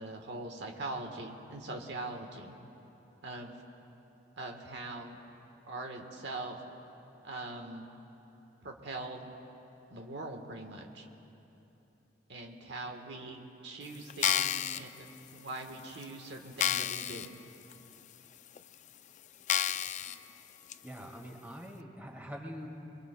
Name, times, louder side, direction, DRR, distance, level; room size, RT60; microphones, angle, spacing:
voice 1, 0.0-2.6 3.2-3.5 4.4-5.2 5.7-6.6 7.2-7.9 8.6-9.3 9.9-11.1 12.3-17.4, right 2 dB, 70° right, 2 dB, 1.3 m, -42 dB
sound 1, 14.1-14.8 15.5-15.6 16.0-16.1 16.6-17.3 17.7-17.8 18.6-18.7 19.5-20.2 20.7-20.8, left 10 dB, 40° left, 0.4 m, -30 dB
voice 2, 20.8-22.7, equal, 10° right, 0 dB, 1.8 m, -44 dB
26.5 x 22.5 x 2.3 m, 3.0 s
head